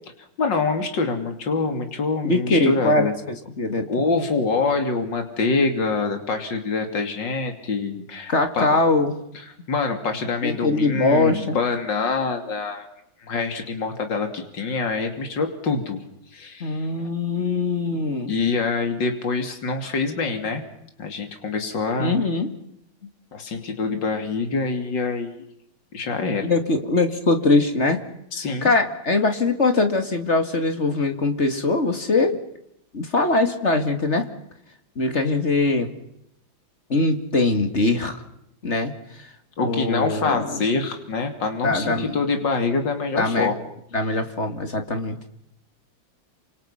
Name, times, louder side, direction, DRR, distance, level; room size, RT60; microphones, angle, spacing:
voice 1, 0.4-3.1 3.9-8.8 9.7-12.9 13.2-16.0 16.3-16.9 18.3-20.6 21.0-22.2 23.3-25.4 25.9-26.5 28.3-28.7 39.6-43.6, left 4 dB, 60° left, 5 dB, 3.5 m, -25 dB
voice 2, 2.2-3.9 8.3-9.1 10.4-11.5 16.6-18.3 22.0-22.6 26.4-28.0 28.6-32.4 32.9-34.3 35.0-35.9 36.9-38.2 38.6-38.9 39.6-40.6 41.6-42.1 43.2-43.5 43.9-45.2, left 3 dB, 35° left, 7 dB, 2.5 m, -22 dB
28.0 x 27.0 x 5.8 m, 0.76 s
omnidirectional pair, 2.2 m